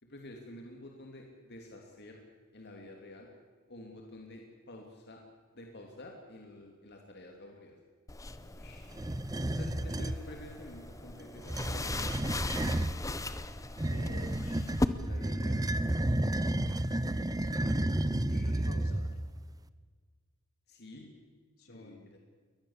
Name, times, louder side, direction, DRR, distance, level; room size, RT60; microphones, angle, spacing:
voice 1, 0.0-2.2 2.5-3.3 3.7-5.2 5.5-7.8 8.4-9.1 9.5-12.3 15.0-15.7 18.0-18.6 20.7-21.1 21.7-22.2, left 1 dB, 50° left, 1 dB, 2.8 m, -50 dB
sound 1, 8.1-14.9, left 2 dB, 15° left, 0.9 m, -38 dB
sound 2, 8.9-10.2 11.4-13.0 13.8-19.3, right 1 dB, 15° right, 0.7 m, -31 dB
voice 2, 13.8-14.7 18.3-19.2 21.6-22.1, left 2 dB, 65° left, 4 dB, 3.6 m, -50 dB
23.0 x 20.0 x 7.3 m, 1.5 s
head